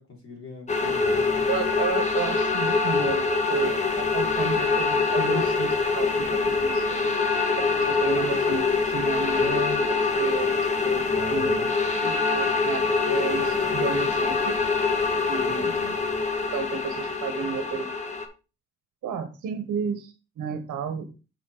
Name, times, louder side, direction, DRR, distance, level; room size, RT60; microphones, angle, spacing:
voice 1, 0.0-1.5 9.4-9.8 11.1-11.7 15.6-16.0, left 3 dB, 45° left, -1 dB, 3.6 m, -38 dB
sound 1, 0.7-18.3, left 4 dB, 25° left, 1.4 m, -24 dB
voice 2, 1.5-7.0 7.6-10.5 10.8-11.0 11.3-11.5 12.0-14.6 15.3-15.7 16.5-17.9 19.0-21.1, right 7 dB, 75° right, 7 dB, 1.3 m, -32 dB
6.5 x 4.3 x 4.9 m, 0.31 s
cardioid pair, 90°, 30 cm